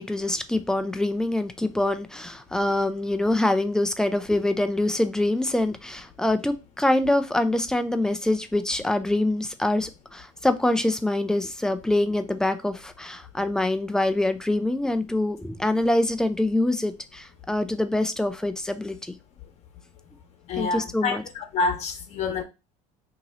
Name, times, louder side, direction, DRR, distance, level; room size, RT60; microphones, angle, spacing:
voice 1, 0.0-19.1 20.6-21.2, left 1 dB, 5° left, 0.3 m, -25 dB
voice 2, 20.4-22.4, left 4 dB, 45° left, 0.9 m, -27 dB
2.9 x 2.8 x 4.0 m
cardioid pair, 120°, 15 cm